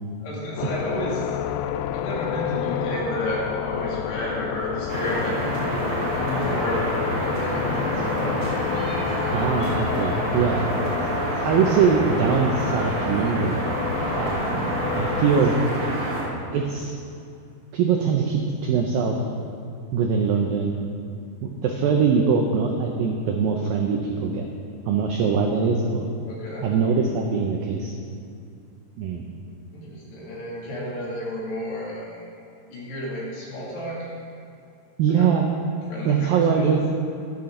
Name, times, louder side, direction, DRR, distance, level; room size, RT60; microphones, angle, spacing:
voice 1, 0.2-1.3 1.9-5.9 6.2-6.9 7.1-8.5 9.0-9.4 11.7-12.0 26.3-26.7 29.7-32.3 32.7-34.1 35.0-35.3 35.9-36.6, equal, 65° left, -5 dB, 4.7 m, -32 dB
sound 1, 0.6-15.5, left 11 dB, 90° left, 2.3 m, -30 dB
sound 2, 4.9-16.2, right 1 dB, 40° right, 3.8 m, -28 dB
voice 2, 9.3-10.6 11.4-13.6 14.2-15.5 16.5-16.9 17.7-19.2 19.9-20.8 21.4-24.5 24.9-26.1 26.6-27.9 29.0-29.3 35.0-35.5 36.1-36.8, right 6 dB, 90° right, 1 dB, 2.0 m, -22 dB
14.5 x 12.5 x 3.9 m, 2.5 s
omnidirectional pair, 5.2 m